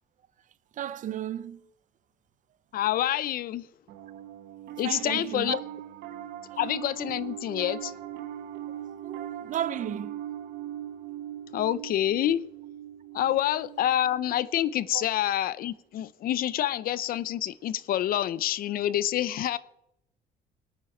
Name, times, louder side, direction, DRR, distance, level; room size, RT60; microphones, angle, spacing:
voice 1, 0.8-1.6 4.8-5.6 6.5-6.6 9.0-10.2 14.9-15.0, right 10 dB, 50° right, 0.5 m, -34 dB
voice 2, 2.7-3.7 4.8-5.6 6.6-7.9 11.5-12.4 13.1-19.6, left 12 dB, 60° left, 0.6 m, -27 dB
Piano, 3.9-15.4, right 11 dB, 80° right, 1.1 m, -40 dB
19.0 x 9.2 x 4.4 m
cardioid pair, 110°, 17 cm